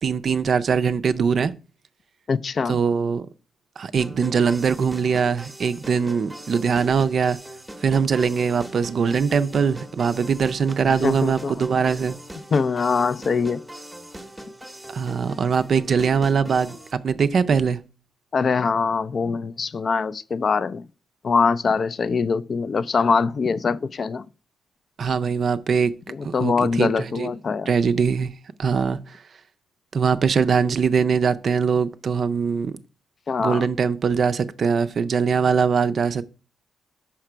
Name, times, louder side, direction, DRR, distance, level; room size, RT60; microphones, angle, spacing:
voice 1, 0.0-1.5 2.7-3.3 3.8-7.4 7.8-12.2 14.9-17.8 25.0-25.9 26.2-27.3 27.7-28.3 28.6-29.0 29.9-32.7 33.4-36.2, right 6 dB, 50° right, 0.4 m, -22 dB
voice 2, 2.3-2.8 11.0-11.5 12.5-13.6 18.3-20.8 21.2-24.2 26.1-27.7 33.3-33.7, left 5 dB, 45° left, 0.3 m, -23 dB
sound 1, 4.0-16.9, right 1 dB, 5° right, 0.8 m, -41 dB
5.8 x 4.9 x 4.5 m
cardioid pair, 105°, 0 cm